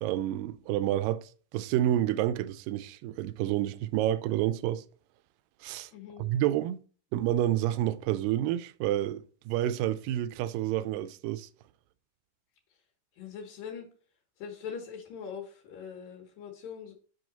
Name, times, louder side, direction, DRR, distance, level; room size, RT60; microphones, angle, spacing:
voice 1, 0.0-4.8 5.6-5.9 6.2-6.8 7.1-11.5, right 12 dB, 85° right, 2.2 m, -29 dB
voice 2, 5.9-6.3 13.2-13.9 14.4-16.9, left 7 dB, 80° left, 3.0 m, -42 dB
7.8 x 5.7 x 3.9 m
omnidirectional pair, 3.9 m